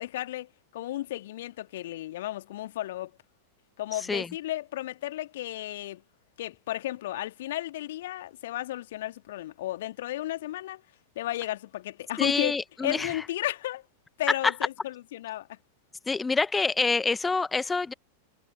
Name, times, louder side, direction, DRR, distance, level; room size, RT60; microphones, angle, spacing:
voice 1, 0.0-3.1 3.8-6.0 6.4-10.8 11.2-12.6 12.8-13.8 14.2-15.6, left 14 dB, 55° left, 1.7 m, -34 dB
voice 2, 3.9-4.3 12.2-13.3 14.3-14.5 16.1-17.9, left 4 dB, 10° left, 0.9 m, -27 dB
figure-of-eight pair, 90°, 0 cm